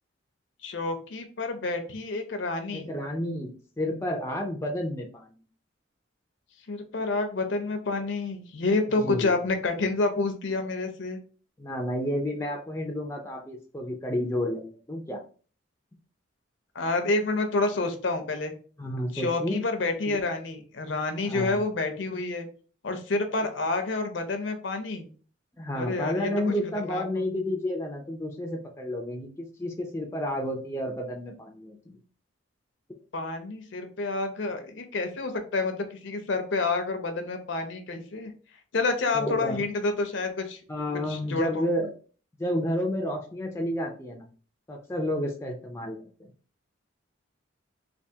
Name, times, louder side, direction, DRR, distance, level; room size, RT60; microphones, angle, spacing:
voice 1, 0.6-2.9 6.7-11.2 16.7-18.5 19.1-22.5 22.8-25.1 25.7-26.5 26.9-27.0 33.1-38.3 38.7-40.6 41.1-41.7, left 3 dB, 65° left, 6 dB, 0.6 m, -29 dB
voice 2, 2.7-5.4 9.0-9.3 11.6-15.2 18.8-19.6 20.1-20.2 21.3-21.6 25.6-32.0 39.1-39.6 40.7-41.9 42.4-44.2 44.7-46.3, left 1 dB, 15° left, 1 dB, 0.4 m, -31 dB
3.4 x 2.5 x 2.7 m, 0.40 s
head